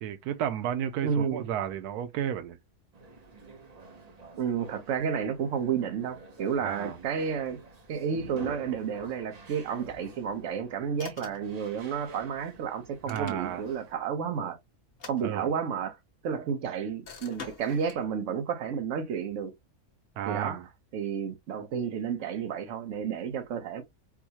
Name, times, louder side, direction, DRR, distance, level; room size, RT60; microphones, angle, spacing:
voice 1, 0.0-2.6 6.6-7.0 13.1-13.6 15.2-15.5 20.2-20.7, right 10 dB, 90° right, 1.1 m, -32 dB
voice 2, 1.0-1.4 4.4-7.6 7.9-14.6 15.1-16.0 16.2-19.5 20.3-20.6 20.9-23.8, right 7 dB, 60° right, 1.1 m, -31 dB
sound 1, 2.9-13.9, right 3 dB, 40° right, 0.6 m, -48 dB
sound 2, 11.0-11.6 12.9-13.7 14.9-15.8 17.1-18.0, left 4 dB, 45° left, 1.0 m, -46 dB
4.6 x 2.0 x 2.8 m
omnidirectional pair, 1.6 m